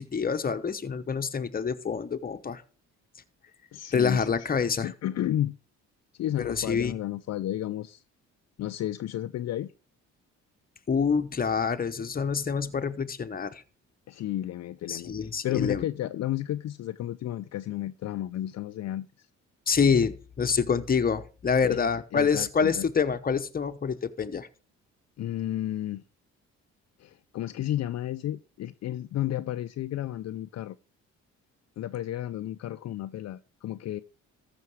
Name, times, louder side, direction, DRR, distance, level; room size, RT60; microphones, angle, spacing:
voice 1, 0.0-2.6 3.9-4.9 6.4-7.0 10.9-13.6 14.9-15.8 19.7-24.5, left 6 dB, 30° left, 1.0 m, -27 dB
voice 2, 3.7-4.3 4.8-5.6 6.2-8.0 8.6-9.7 14.1-19.1 21.6-22.9 25.2-26.0 27.0-30.8 31.8-34.0, left 13 dB, 60° left, 0.5 m, -32 dB
14.0 x 6.0 x 4.7 m
cardioid pair, 90°, 30 cm